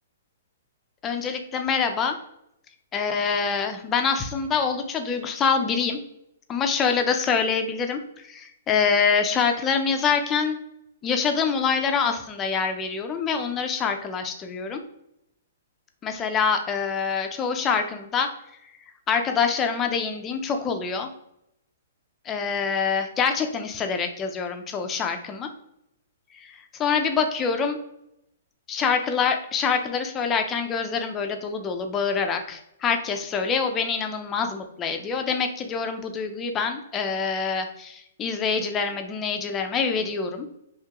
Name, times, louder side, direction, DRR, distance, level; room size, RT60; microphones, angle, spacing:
voice 1, 1.0-2.2 2.9-6.0 6.5-10.6 11.0-14.8 16.0-18.3 19.1-21.1 22.3-25.5 26.3-27.8 28.7-40.5, left 6 dB, 20° left, 5 dB, 0.4 m, -25 dB
3.6 x 2.7 x 2.9 m, 0.79 s
hypercardioid pair, 145°, 0 cm